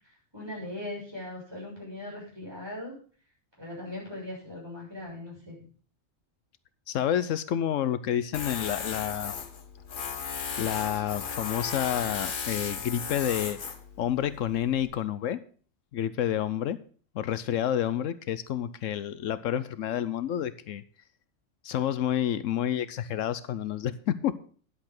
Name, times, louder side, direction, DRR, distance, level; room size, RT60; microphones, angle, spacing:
voice 1, 0.3-2.9 3.6-5.6, left 1 dB, 20° right, -5 dB, 6.6 m, -39 dB
voice 2, 6.9-9.4 10.6-13.6 14.0-15.4 15.9-16.8 17.1-20.8 21.6-24.4, left 10 dB, 80° left, 14 dB, 1.0 m, -29 dB
Tools, 8.3-14.9, left 6 dB, 45° left, 1.0 m, -36 dB
10.5 x 7.7 x 5.9 m, 0.44 s
omnidirectional pair, 1.3 m